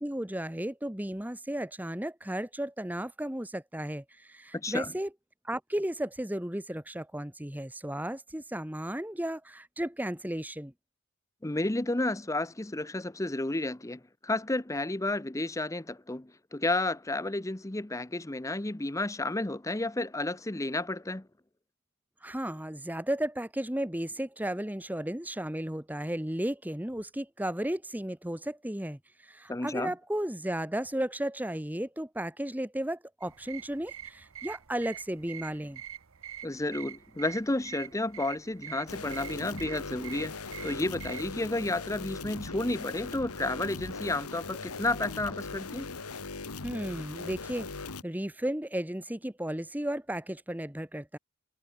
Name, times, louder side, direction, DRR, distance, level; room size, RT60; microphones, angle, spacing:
voice 1, 0.0-5.1 5.4-10.7 22.2-35.8 46.6-47.7 48.0-51.2, right 1 dB, 5° right, 1.1 m, -34 dB
voice 2, 4.5-4.9 11.4-21.3 29.5-29.9 36.4-45.9, left 2 dB, 15° left, 0.7 m, -32 dB
sound 1, 33.2-41.3, right 10 dB, 60° right, 0.9 m, -45 dB
sound 2, 38.9-48.0, left 3 dB, 90° left, 1.8 m, -40 dB
head